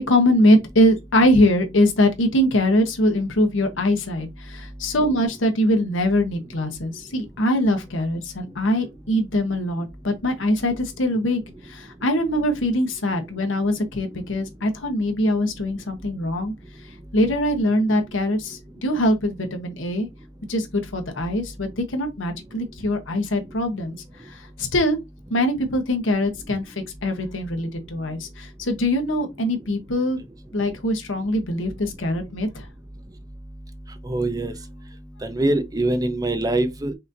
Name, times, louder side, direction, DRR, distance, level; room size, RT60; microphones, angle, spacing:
voice 1, 0.0-16.5 17.1-20.1 20.5-24.0 24.3-25.0 25.3-30.2 30.5-32.7, left 1 dB, 80° left, 1.1 m, -22 dB
voice 2, 34.0-34.5 35.2-36.9, right 2 dB, 20° right, 0.7 m, -23 dB
5.8 x 2.8 x 2.6 m
head